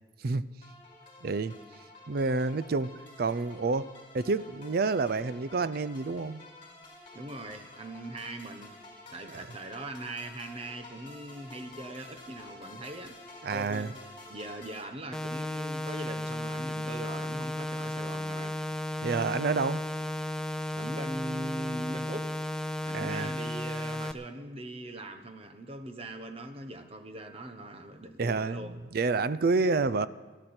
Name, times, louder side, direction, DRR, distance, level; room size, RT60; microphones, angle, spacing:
sound 1, 0.6-14.8, left 2 dB, 30° left, 4.1 m, -50 dB
voice 1, 1.2-1.6 2.1-2.9 3.2-3.9 4.1-6.4 9.3-9.5 13.4-13.9 19.0-19.8 22.9-23.3 28.2-30.1, right 3 dB, 55° right, 16 dB, 0.5 m, -29 dB
voice 2, 7.1-8.7 9.1-14.0 14.3-18.6 20.7-22.3 22.8-28.8, right 1 dB, 30° right, 6 dB, 1.1 m, -41 dB
sound 2, 15.1-24.1, left 1 dB, 5° left, 0.5 m, -34 dB
18.5 x 13.5 x 4.4 m, 1.3 s
head